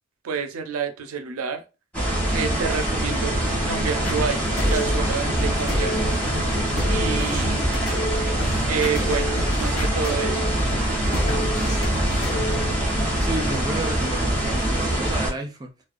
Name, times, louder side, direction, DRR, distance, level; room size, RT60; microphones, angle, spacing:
voice 1, 0.2-1.6 2.3-6.6 6.9-7.7 8.6-10.5, right 6 dB, 90° right, 0.4 m, -29 dB
sound 1, 1.9-15.3, right 1 dB, 5° left, 0.9 m, -24 dB
sound 2, 3.6-4.6 5.1-5.2 5.5-8.2 8.5-9.3 10.4-12.2 12.6-13.3, left 1 dB, 30° left, 0.7 m, -43 dB
sound 3, 4.0-12.7, equal, 75° left, 1.0 m, -29 dB
voice 2, 13.2-15.8, right 2 dB, 20° right, 0.3 m, -31 dB
2.4 x 2.1 x 2.4 m
head